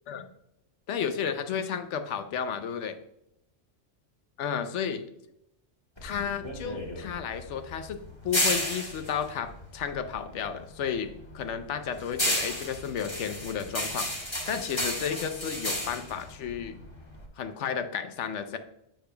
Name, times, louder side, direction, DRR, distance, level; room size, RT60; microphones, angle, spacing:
voice 1, 0.9-3.0 4.4-5.1 6.0-8.0 8.2-16.8 17.4-18.6, left 7 dB, 85° left, 9 dB, 1.0 m, -32 dB
sound 1, 6.0-10.5 10.8-17.3, left 1 dB, 25° left, 1.5 m, -32 dB
7.8 x 6.7 x 2.2 m, 0.80 s
omnidirectional pair, 1.2 m